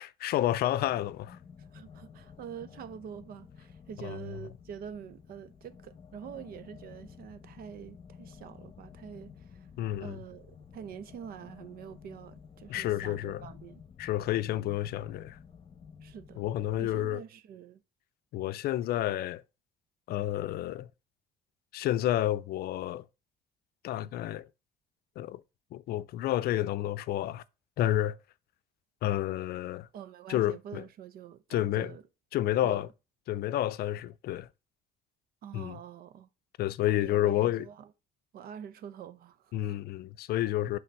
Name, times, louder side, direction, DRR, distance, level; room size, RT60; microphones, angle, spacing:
voice 1, 0.0-1.4 4.0-4.2 9.8-10.2 12.7-13.5 14.0-15.4 16.4-17.2 18.3-19.4 20.1-20.9 21.7-23.1 23.8-24.5 25.2-25.4 25.7-27.4 27.8-28.2 29.0-29.9 30.3-30.8 31.5-31.9 32.3-32.9 33.3-34.5 35.5-35.8 36.6-37.7 39.5-40.8, left 13 dB, 65° left, 0.5 m, -30 dB
sound 1, 0.8-17.0, left 6 dB, 35° left, 0.9 m, -52 dB
voice 2, 1.6-9.7 10.0-13.8 16.0-16.4 16.8-17.8 18.9-19.1 29.9-32.0 32.6-32.8 35.4-36.3 36.9-37.9 38.3-39.8, right 8 dB, 60° right, 0.7 m, -46 dB
5.9 x 3.8 x 4.5 m
cardioid pair, 110°, 17 cm